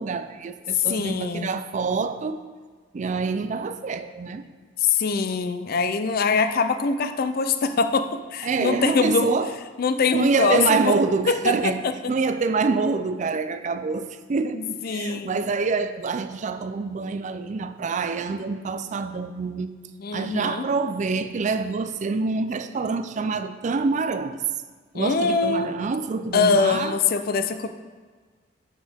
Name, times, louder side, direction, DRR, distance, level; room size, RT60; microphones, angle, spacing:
voice 1, 0.0-2.4 2.9-4.4 8.4-9.5 10.1-11.8 12.1-19.7 20.1-24.4 24.9-27.0, right 4 dB, 40° right, 10 dB, 0.4 m, -26 dB
voice 2, 0.7-1.6 4.8-9.3 9.8-11.0 11.3-11.7 14.5-15.4 20.0-20.7 24.9-25.7 26.3-27.7, left 5 dB, 55° left, 9 dB, 0.4 m, -23 dB
7.3 x 6.3 x 3.5 m, 1.5 s
head